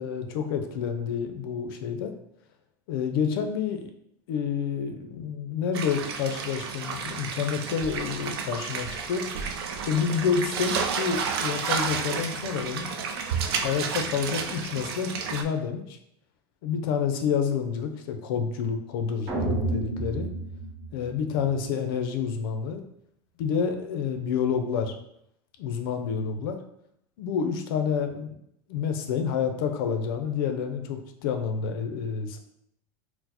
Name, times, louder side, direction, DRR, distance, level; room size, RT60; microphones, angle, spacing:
voice 1, 0.0-2.1 2.9-3.9 4.3-9.3 9.8-12.9 13.5-16.0 16.6-20.3 20.9-22.8 23.4-24.9 25.6-26.6 27.2-28.4 28.7-32.4, left 6 dB, 65° left, 6 dB, 0.5 m, -29 dB
sound 1, 5.7-15.4, right 6 dB, 80° right, 0.4 m, -31 dB
sound 2, 19.3-21.6, right 2 dB, 25° right, 0.6 m, -30 dB
4.3 x 2.0 x 2.8 m, 0.75 s
supercardioid pair, 165°, 13 cm